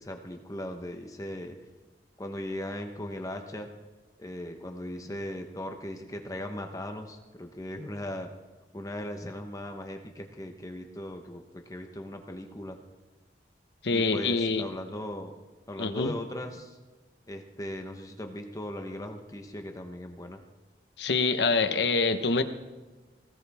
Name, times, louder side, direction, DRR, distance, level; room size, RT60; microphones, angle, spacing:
voice 1, 0.0-1.6 2.2-3.7 4.2-8.3 8.7-12.8 13.9-15.3 15.7-16.8 17.3-20.4, left 1 dB, 20° left, 4 dB, 1.0 m, -38 dB
voice 2, 13.8-14.6 15.8-16.1 21.0-22.4, left 4 dB, 75° left, 9 dB, 1.0 m, -25 dB
20.0 x 16.5 x 3.5 m, 1.3 s
head